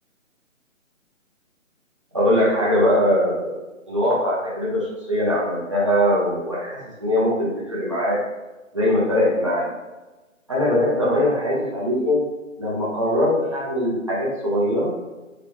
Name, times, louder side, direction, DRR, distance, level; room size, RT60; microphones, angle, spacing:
voice 1, 2.1-3.6 3.9-8.2 8.7-9.7 10.5-12.2 12.6-14.9, left 1 dB, 25° right, -7 dB, 0.6 m, -21 dB
3.0 x 2.7 x 3.0 m, 1.1 s
figure-of-eight pair, 160°, 40 cm